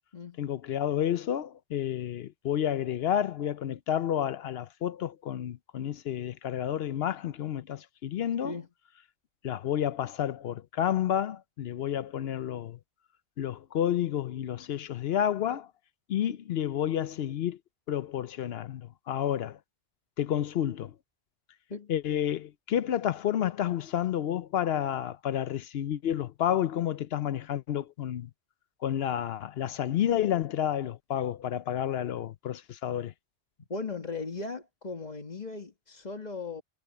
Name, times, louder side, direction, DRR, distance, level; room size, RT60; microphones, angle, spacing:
voice 1, 0.4-8.6 9.4-12.8 13.4-15.7 16.1-17.6 17.9-19.6 20.2-20.9 21.9-28.3 28.8-33.1, left 10 dB, 65° left, 0.8 m, -30 dB
voice 2, 33.6-36.6, left 3 dB, 35° left, 1.8 m, -37 dB
omnidirectional pair, 1.2 m